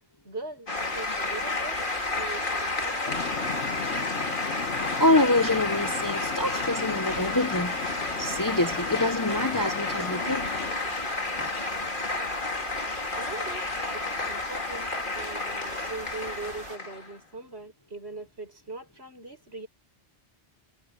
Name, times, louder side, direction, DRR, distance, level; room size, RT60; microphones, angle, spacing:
voice 1, 0.2-1.8 2.1-3.4 13.1-19.7, right 3 dB, 65° right, 7.5 m, -41 dB
sound 1, 0.7-17.2, left 3 dB, 45° left, 2.4 m, -31 dB
sound 2, 0.7-16.8, right 3 dB, 80° right, 2.3 m, -44 dB
sound 3, 3.1-10.7, left 6 dB, 85° left, 1.5 m, -37 dB
voice 2, 5.0-7.7 8.2-10.5 11.4-11.5, left 2 dB, 20° left, 0.7 m, -26 dB
omnidirectional pair, 1.2 m